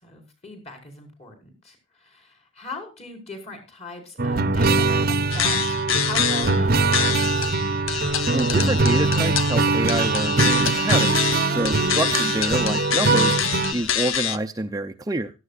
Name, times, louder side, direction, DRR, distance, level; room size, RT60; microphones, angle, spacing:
voice 1, 0.0-7.5, left 2 dB, 30° left, 5 dB, 5.4 m, -40 dB
sound 1, 4.2-13.7, right 3 dB, 45° right, 0.8 m, -22 dB
sound 2, 5.3-6.6 6.9-14.4, left 9 dB, 85° left, 1.0 m, -26 dB
voice 2, 8.3-15.3, right 2 dB, 20° right, 5 dB, 0.6 m, -27 dB
16.5 x 13.5 x 2.5 m, 0.29 s
head